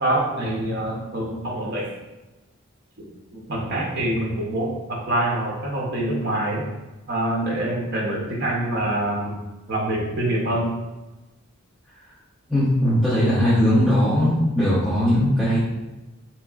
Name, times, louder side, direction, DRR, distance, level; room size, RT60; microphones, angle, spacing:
voice 1, 0.0-1.9 3.3-6.7 7.1-9.4 9.7-10.7, right 1 dB, 50° right, -3 dB, 0.7 m, -25 dB
voice 2, 12.5-15.6, equal, ahead, -15 dB, 0.9 m, -19 dB
3.6 x 2.9 x 2.3 m, 1.1 s
head